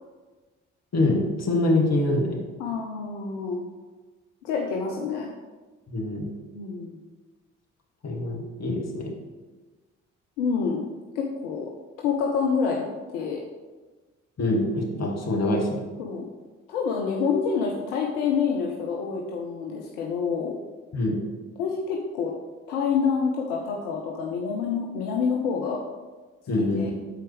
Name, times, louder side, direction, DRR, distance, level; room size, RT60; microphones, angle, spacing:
voice 1, 0.9-2.4 5.9-6.3 8.0-9.1 14.4-15.8 20.9-21.2 26.5-26.9, left 2 dB, 45° left, 0 dB, 1.9 m, -24 dB
voice 2, 2.6-3.6 4.4-5.3 6.5-7.0 10.4-10.8 11.1-11.7 12.0-12.8 13.1-13.4 16.0-16.3 16.7-20.5 21.6-22.3 22.7-25.8 26.6-26.9, left 5 dB, 80° left, 0 dB, 0.8 m, -27 dB
12.5 x 4.5 x 3.3 m, 1.3 s
hypercardioid pair, 40°, 35 cm